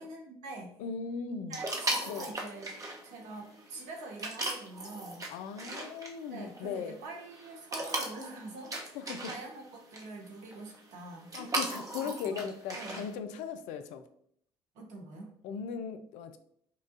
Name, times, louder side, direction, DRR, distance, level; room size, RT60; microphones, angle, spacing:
voice 1, 0.0-0.8 1.5-2.7 3.0-5.3 6.3-9.6 9.9-11.4 12.0-12.5 12.7-13.1 14.7-15.3, right 2 dB, 65° right, 1 dB, 1.1 m, -45 dB
voice 2, 0.8-1.6 2.1-2.3 5.3-7.0 8.9-9.3 11.3-14.0 15.4-16.4, left 6 dB, 65° left, 9 dB, 0.4 m, -38 dB
sound 1, 1.5-13.2, right 2 dB, 25° right, 1.0 m, -39 dB
5.5 x 2.4 x 2.6 m, 0.67 s
hypercardioid pair, 55°, 13 cm